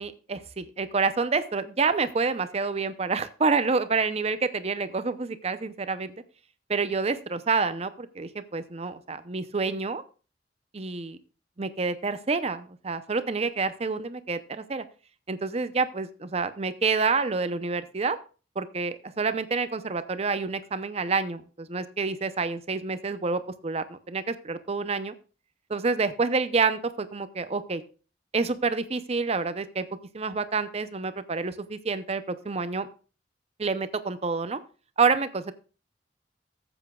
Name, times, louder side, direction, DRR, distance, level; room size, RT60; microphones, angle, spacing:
voice 1, 0.0-6.1 6.7-10.0 10.7-11.2 11.6-14.8 15.3-18.2 18.6-25.1 25.7-27.8 28.3-29.9 30.1-32.9 33.6-34.6 35.0-35.5, right 4 dB, 35° right, 12 dB, 0.6 m, -28 dB
14.5 x 8.0 x 2.3 m, 0.36 s
head